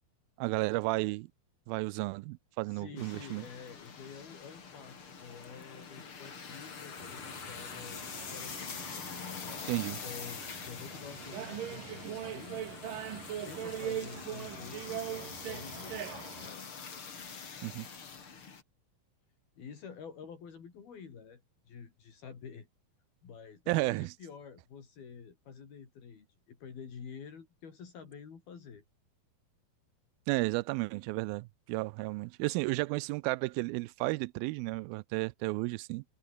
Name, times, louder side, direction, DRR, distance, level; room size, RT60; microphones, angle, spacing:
voice 1, 0.4-1.3 1.7-3.5 9.7-10.0 17.6-17.9 23.7-24.1 30.3-36.0, right 22 dB, 80° right, 2.3 m, -33 dB
voice 2, 2.6-8.8 9.8-12.7 13.4-16.7 19.6-22.7 23.2-28.8, left 6 dB, 70° left, 6.0 m, -49 dB
sound 1, 3.0-18.6, left 5 dB, 35° left, 3.4 m, -45 dB
sound 2, 7.0-16.5, right 10 dB, 65° right, 3.4 m, -42 dB
omnidirectional pair, 4.4 m